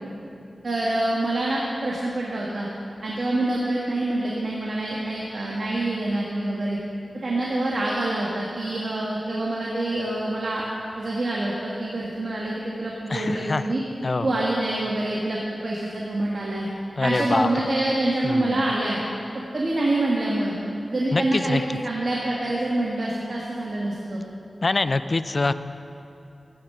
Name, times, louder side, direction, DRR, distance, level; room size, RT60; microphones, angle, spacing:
voice 1, 0.6-2.7 3.0-6.8 7.2-10.6 11.0-13.8 14.2-16.7 17.0-19.0 19.5-20.5 20.9-24.2, right 1 dB, 60° right, -4 dB, 1.8 m, -26 dB
voice 2, 13.1-13.6 14.0-14.4 17.0-17.5 18.2-18.6 21.1-21.6 24.6-25.5, left 3 dB, 50° left, 12 dB, 0.4 m, -24 dB
14.0 x 10.0 x 5.7 m, 2.7 s
wide cardioid pair, 75°, 0 cm